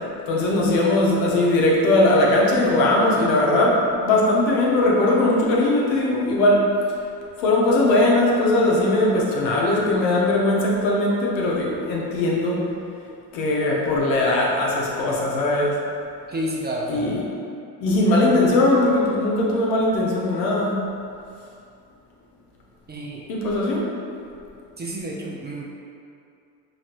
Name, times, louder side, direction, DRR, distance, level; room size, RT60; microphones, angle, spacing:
voice 1, 0.3-6.7 7.4-12.6 13.3-15.8 16.9-17.2 17.8-20.8 23.3-23.9, left 2 dB, 80° left, -3 dB, 0.9 m, -19 dB
voice 2, 16.3-17.1 22.9-23.2 24.8-25.6, right 1 dB, 20° right, -3 dB, 0.5 m, -30 dB
4.2 x 3.1 x 2.5 m, 2.5 s
hypercardioid pair, 65°, 50 cm